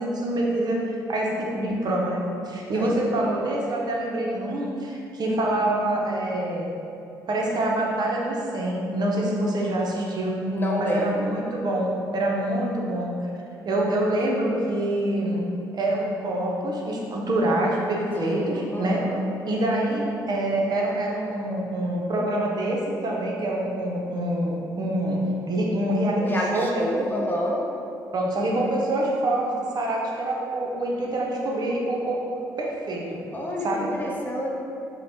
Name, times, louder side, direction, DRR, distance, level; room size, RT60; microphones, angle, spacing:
voice 1, 0.0-6.7 7.3-10.4 10.8-13.1 13.6-15.4 15.7-19.0 19.5-26.9 28.1-33.2 33.6-33.9, right 1 dB, 50° right, -2 dB, 0.5 m, -26 dB
voice 2, 10.5-11.3 18.1-19.2 26.2-27.6 33.3-34.5, equal, 20° left, -2 dB, 0.5 m, -29 dB
2.8 x 2.0 x 3.0 m, 2.6 s
hypercardioid pair, 55°, 9 cm